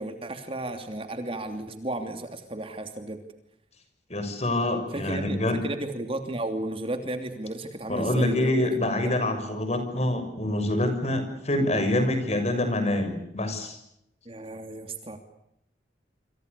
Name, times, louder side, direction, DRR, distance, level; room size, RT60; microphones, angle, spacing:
voice 1, 0.0-3.2 4.9-8.7 14.2-15.2, right 1 dB, 30° right, 7 dB, 3.0 m, -33 dB
voice 2, 4.1-5.6 7.9-13.8, left 1 dB, 40° left, 8 dB, 6.6 m, -26 dB
27.5 x 27.5 x 6.9 m, 0.79 s
head